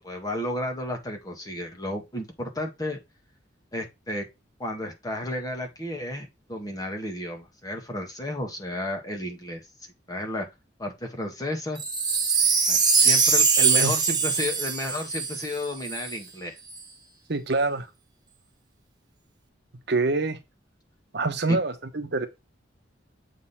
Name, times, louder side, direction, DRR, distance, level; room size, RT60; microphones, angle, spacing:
voice 1, 0.0-3.0 3.7-4.2 4.6-9.6 10.1-10.5 10.8-11.8 12.7-16.6 21.5-21.6, left 1 dB, 20° left, 1.6 m, -32 dB
Wind chime, 11.8-16.1 16.7-16.8, right 5 dB, 25° right, 1.5 m, -22 dB
voice 2, 17.3-17.9 19.9-20.4 21.1-22.3, right 3 dB, 65° right, 1.0 m, -25 dB
7.4 x 3.9 x 4.2 m
head